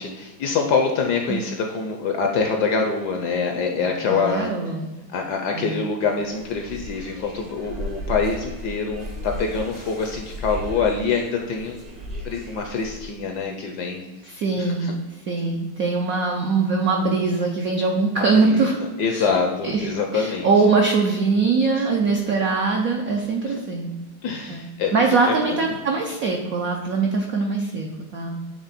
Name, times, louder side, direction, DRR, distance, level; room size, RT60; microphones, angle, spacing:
voice 1, 0.0-4.5 5.1-12.0 12.2-14.0 14.6-14.9 18.2-18.7 19.0-20.5 23.5-23.6 24.2-25.6, left 5 dB, 70° left, 3 dB, 1.0 m, -25 dB
voice 2, 4.0-4.9 5.5-5.8 14.2-14.9 15.3-18.8 19.1-19.3 19.6-23.9 24.5-24.6 24.9-28.4, right 4 dB, 75° right, 1 dB, 0.8 m, -22 dB
sound 1, 6.0-13.2, left 1 dB, 40° right, 0.5 m, -36 dB
7.9 x 3.6 x 4.1 m, 1.2 s
omnidirectional pair, 2.3 m